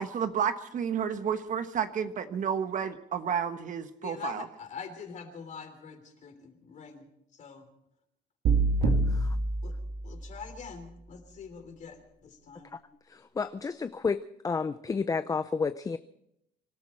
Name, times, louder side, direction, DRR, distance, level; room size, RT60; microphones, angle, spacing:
voice 1, 0.0-4.5, right 7 dB, 50° right, 9 dB, 1.2 m, -31 dB
voice 2, 4.0-7.0 7.3-7.7 9.6-9.7 10.0-12.7, left 6 dB, 45° left, 7 dB, 3.2 m, -44 dB
sound 1, 8.5-10.6, right 3 dB, 75° right, 2.2 m, -27 dB
voice 3, 8.8-9.3 13.1-16.0, left 5 dB, 20° left, 12 dB, 0.5 m, -31 dB
25.5 x 13.0 x 4.4 m, 0.79 s
cardioid pair, 110°, 17 cm